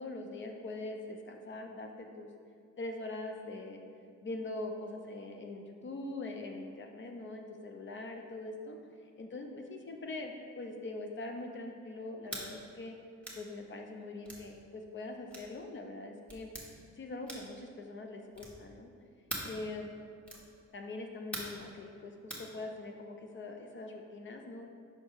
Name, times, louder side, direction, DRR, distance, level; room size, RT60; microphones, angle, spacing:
voice 1, 0.0-2.3 2.8-3.8 4.2-8.8 9.2-13.0 13.3-16.5 17.0-18.9 19.4-19.9 20.7-24.7, left 2 dB, 40° left, 3 dB, 0.7 m, -42 dB
sound 1, 12.3-12.5 13.2-13.4 14.2-14.5 15.3-15.5 16.3-16.7 17.2-17.6 18.3-18.6 19.3-19.6 20.2-20.5 21.3-21.6 22.3-22.5, right 1 dB, 5° left, 1.5 m, -42 dB
6.0 x 4.4 x 4.8 m, 2.2 s
cardioid pair, 90°, 30 cm